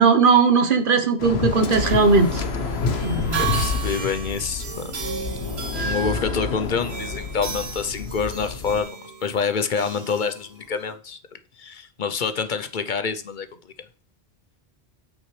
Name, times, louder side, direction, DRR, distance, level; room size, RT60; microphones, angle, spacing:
voice 1, 0.0-2.4 3.0-3.4, right 4 dB, 55° right, 1.2 m, -18 dB
Waves surf, 1.2-8.8, left 4 dB, 75° left, 1.3 m, -28 dB
sound 1, 1.4-10.9, right 5 dB, 80° right, 1.6 m, -34 dB
voice 2, 3.2-4.9 5.2-13.7, left 5 dB, 50° left, 0.8 m, -27 dB
8.3 x 6.3 x 3.2 m
omnidirectional pair, 1.1 m